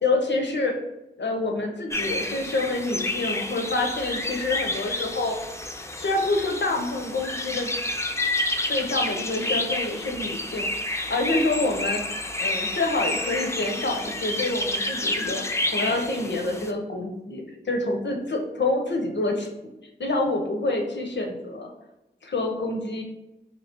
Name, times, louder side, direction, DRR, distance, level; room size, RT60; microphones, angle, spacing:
voice 1, 0.0-0.7 1.2-5.4 6.0-7.7 8.7-12.0 12.4-15.4 15.7-19.5 20.0-21.7 22.2-23.0, left 2 dB, 85° left, 2 dB, 0.6 m, -27 dB
sound 1, 1.9-16.7, left 2 dB, 15° left, 0.4 m, -29 dB
3.0 x 2.8 x 4.3 m, 0.94 s
wide cardioid pair, 45°, 18 cm